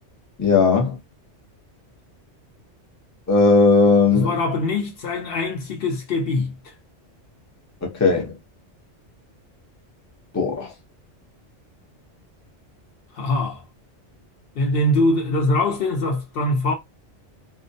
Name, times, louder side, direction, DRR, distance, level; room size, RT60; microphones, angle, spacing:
voice 1, 0.4-1.0 3.3-4.3 7.8-8.3 10.3-10.7, left 4 dB, 20° left, 0.5 m, -17 dB
voice 2, 4.1-6.7 13.1-13.6 14.6-16.7, left 2 dB, 60° left, 0.7 m, -23 dB
2.3 x 2.1 x 2.6 m
omnidirectional pair, 1.2 m